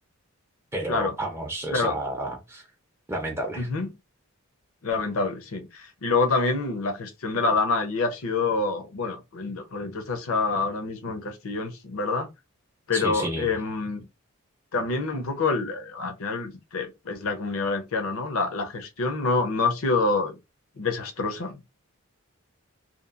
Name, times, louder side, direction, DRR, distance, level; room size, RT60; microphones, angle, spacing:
voice 1, 0.7-2.7 3.1-3.7 12.9-13.5, right 1 dB, 10° right, 0.5 m, -31 dB
voice 2, 3.6-3.9 4.8-12.3 12.9-14.0 14.7-20.4 20.8-21.7, left 3 dB, 70° left, 0.6 m, -27 dB
2.9 x 2.3 x 2.4 m
head